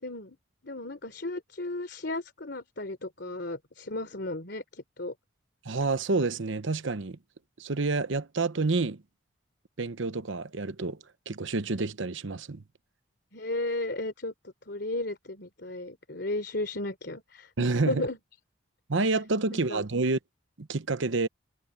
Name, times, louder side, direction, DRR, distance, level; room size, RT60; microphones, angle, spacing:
voice 1, 0.0-0.4 0.6-5.1 13.3-18.2 19.5-19.8, left 2 dB, 55° left, 3.5 m, -35 dB
voice 2, 5.6-7.2 7.6-9.0 9.8-11.0 11.3-12.6 17.6-18.1 18.9-20.2 20.6-21.3, right 3 dB, 75° right, 0.9 m, -28 dB
head